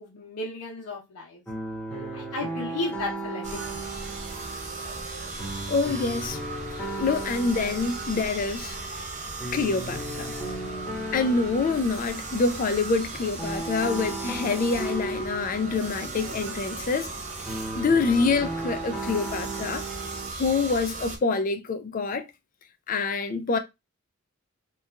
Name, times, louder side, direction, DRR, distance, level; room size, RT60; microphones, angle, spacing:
voice 1, 0.0-1.4 1.9-3.8, left 2 dB, 85° left, 0.7 m, -34 dB
sound 1, 1.5-20.3, right 2 dB, 5° left, 0.9 m, -36 dB
sound 2, 3.4-21.2, right 3 dB, 30° right, 0.5 m, -37 dB
voice 2, 5.7-6.4 6.8-8.8 9.5-10.3 11.1-17.1 17.7-19.8 20.4-22.2 22.9-23.6, left 4 dB, 35° left, 0.3 m, -26 dB
2.8 x 2.3 x 2.3 m
head